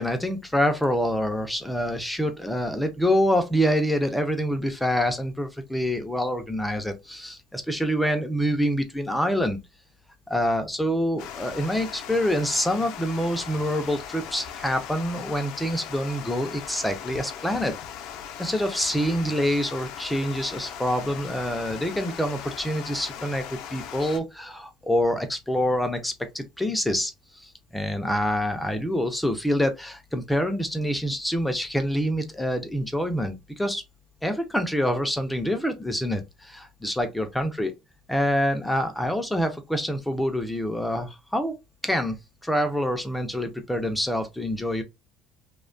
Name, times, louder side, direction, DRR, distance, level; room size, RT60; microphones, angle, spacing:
voice 1, 0.0-9.6 10.3-17.7 18.4-23.4 23.7-33.8 34.2-37.7 38.1-41.6 41.8-44.8, equal, 5° left, 0.4 m, -26 dB
Water, 11.2-24.2, left 9 dB, 70° left, 0.4 m, -39 dB
2.7 x 2.1 x 2.4 m
cardioid pair, 140°, 0 cm